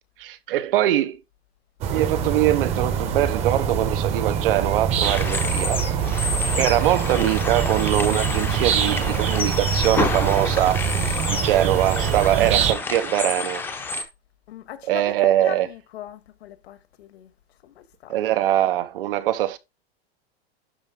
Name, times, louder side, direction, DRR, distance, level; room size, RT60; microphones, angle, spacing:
voice 1, 0.2-1.2 1.9-5.8 6.1-6.3 6.6-10.8 11.3-13.6 14.9-15.7 18.1-19.6, right 13 dB, 60° right, 1.0 m, -22 dB
sound 1, 1.8-12.7, right 8 dB, 20° right, 1.0 m, -24 dB
sound 2, 5.0-14.0, left 4 dB, 5° left, 0.8 m, -29 dB
voice 2, 14.5-17.3 17.6-18.2, left 10 dB, 80° left, 1.7 m, -39 dB
11.5 x 4.7 x 3.8 m
supercardioid pair, 175°, 31 cm